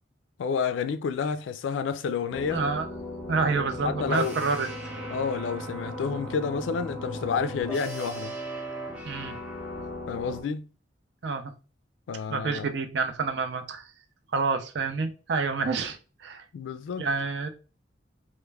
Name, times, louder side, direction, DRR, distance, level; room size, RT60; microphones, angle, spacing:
voice 1, 0.4-2.6 3.6-4.4 5.1-8.4 10.1-10.7 12.1-12.7 16.5-17.1, left 6 dB, 85° left, 0.3 m, -30 dB
sound 1, 2.3-10.4, equal, 5° right, 0.5 m, -37 dB
voice 2, 2.5-2.9 3.3-4.7 9.0-9.4 11.2-11.5 12.3-13.9 14.3-16.4 17.0-17.5, right 4 dB, 65° right, 0.5 m, -28 dB
2.2 x 2.1 x 3.2 m
head